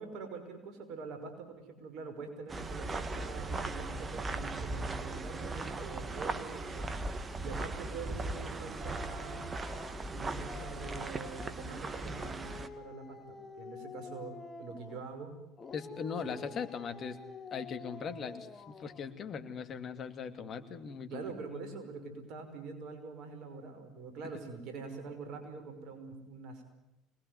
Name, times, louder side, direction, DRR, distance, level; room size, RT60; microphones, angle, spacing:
voice 1, 0.0-6.9 7.4-9.4 10.1-15.4 16.2-16.5 21.1-26.6, right 4 dB, 60° right, 7 dB, 5.8 m, -45 dB
sound 1, 2.5-12.7, right 2 dB, 25° right, 2.0 m, -38 dB
Dog, 8.8-11.6 12.1-15.2 15.6-19.1, left 4 dB, 30° left, 2.8 m, -49 dB
voice 2, 15.7-17.2 17.5-21.2, left 6 dB, 45° left, 8 dB, 2.7 m, -40 dB
25.0 x 20.5 x 9.7 m, 0.93 s
hypercardioid pair, 70°, 0 cm